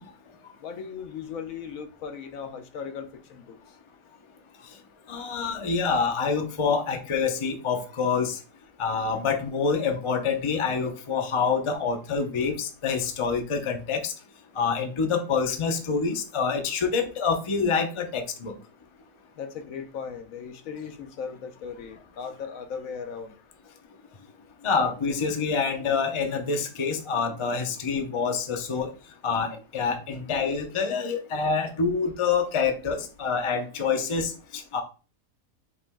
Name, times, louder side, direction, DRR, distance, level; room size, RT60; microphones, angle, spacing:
voice 1, 0.6-3.6 19.4-23.4, left 6 dB, 75° left, 1.1 m, -37 dB
voice 2, 5.1-8.4 8.8-14.1 14.6-18.5 24.6-28.9 29.2-34.8, left 5 dB, 35° left, 0.5 m, -26 dB
5.0 x 3.0 x 3.5 m
omnidirectional pair, 1.5 m